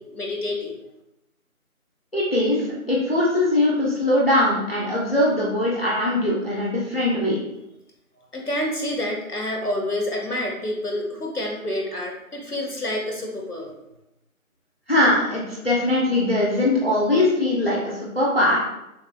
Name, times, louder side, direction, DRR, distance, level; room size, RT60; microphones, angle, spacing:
voice 1, 0.1-0.8 8.3-13.8, left 1 dB, 90° left, 1 dB, 1.5 m, -28 dB
voice 2, 2.1-7.4 14.9-18.6, left 1 dB, 40° left, -5 dB, 0.9 m, -21 dB
6.4 x 2.9 x 2.3 m, 0.88 s
figure-of-eight pair, 175°, 44 cm